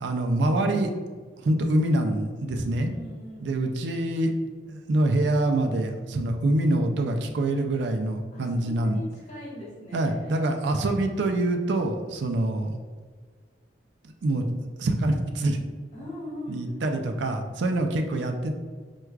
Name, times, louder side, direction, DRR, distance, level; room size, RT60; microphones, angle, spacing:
voice 1, 0.0-0.9 1.4-2.9 3.4-4.3 4.7-9.0 9.9-12.8 14.0-15.6 16.5-18.5, right 1 dB, 70° right, 4 dB, 0.4 m, -25 dB
voice 2, 2.4-3.5 8.3-10.6 15.9-16.6, left 1 dB, 40° left, -6 dB, 1.3 m, -41 dB
4.5 x 2.3 x 2.3 m, 1.5 s
head